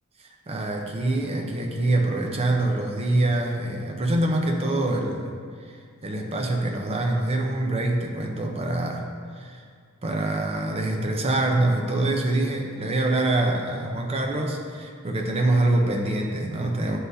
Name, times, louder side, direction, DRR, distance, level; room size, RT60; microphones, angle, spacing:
voice 1, 0.2-5.3 5.6-9.1 9.3-9.6 10.0-17.0, right 2 dB, 30° right, 1 dB, 0.6 m, -25 dB
9.6 x 3.9 x 2.6 m, 2.1 s
head